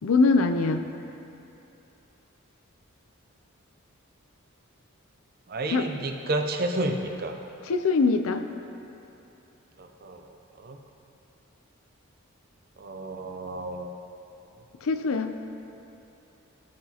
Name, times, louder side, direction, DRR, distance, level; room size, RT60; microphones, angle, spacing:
voice 1, 0.0-0.8 5.7-5.9 7.7-8.4 14.8-15.3, left 4 dB, 80° left, 8 dB, 0.5 m, -22 dB
voice 2, 5.5-7.4 9.8-10.8 12.8-14.0, right 1 dB, 45° right, 4 dB, 0.6 m, -31 dB
13.5 x 5.9 x 2.9 m, 2.9 s
head